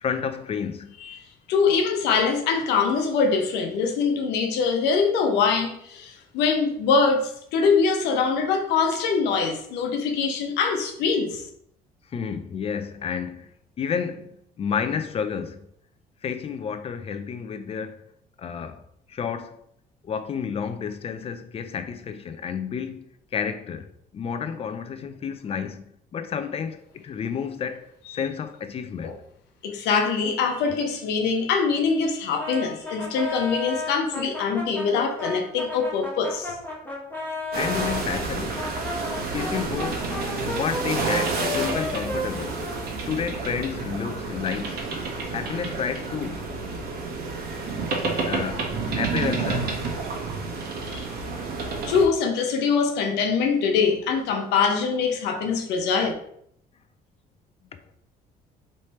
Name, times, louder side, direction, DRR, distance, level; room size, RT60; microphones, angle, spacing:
voice 1, 0.0-0.9 12.1-13.5 13.8-15.6 16.2-18.0 18.4-18.8 19.1-19.6 20.0-23.1 23.3-25.8 26.1-29.1 37.5-38.7 39.3-40.1 40.4-42.6 43.1-44.9 45.3-46.4 48.2-49.8 57.7-57.8, left 7 dB, 35° left, 0.5 m, -30 dB
voice 2, 1.5-11.5 28.1-28.2 29.0-29.1 29.6-36.6 48.1-48.2 50.9-51.0 51.9-56.1, left 5 dB, 85° left, 0.8 m, -23 dB
Brass instrument, 32.4-38.0 38.5-43.3, left 2 dB, 10° left, 1.3 m, -33 dB
sound 1, 37.5-52.0, right 4 dB, 65° right, 1.2 m, -30 dB
3.2 x 3.2 x 4.2 m
cardioid pair, 110°, 17 cm